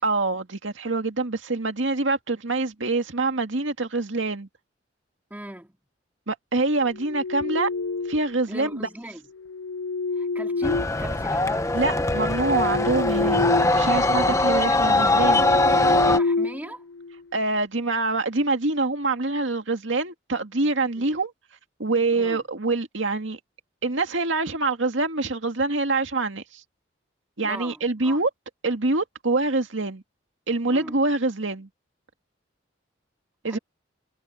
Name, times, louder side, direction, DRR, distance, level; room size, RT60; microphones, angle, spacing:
voice 1, 0.0-4.5 6.3-7.7 8.1-8.9 11.7-13.5 13.7-15.5 17.3-21.3 21.8-23.4 23.8-26.6 27.4-28.3 28.6-30.0 30.5-31.7 33.4-33.6, right 3 dB, 75° right, 2.1 m, -25 dB
voice 2, 5.3-5.8 8.5-9.2 10.1-12.1 16.0-16.8 21.0-21.2 22.1-22.4 27.4-28.2 30.6-31.0 33.5-33.6, right 1 dB, 10° right, 2.9 m, -39 dB
sound 1, 6.9-8.4 9.4-11.5 12.0-13.8 14.1-14.3 14.8-17.2, left 3 dB, 85° left, 0.5 m, -28 dB
sound 2, 10.6-16.2, left 2 dB, 15° left, 0.8 m, -21 dB
head